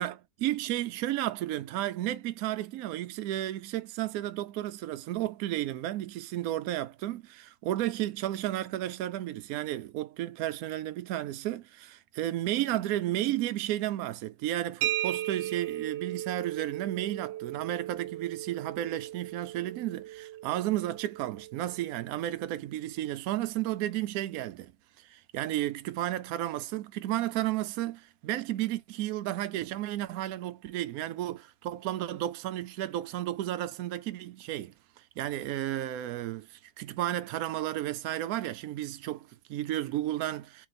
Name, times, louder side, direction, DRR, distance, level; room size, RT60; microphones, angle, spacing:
voice 1, 0.0-24.7 25.0-34.7 35.2-40.7, right 14 dB, 70° right, 0.9 m, -33 dB
sound 1, 14.8-22.4, right 14 dB, 90° right, 1.3 m, -37 dB
3.3 x 3.2 x 4.0 m
omnidirectional pair, 1.9 m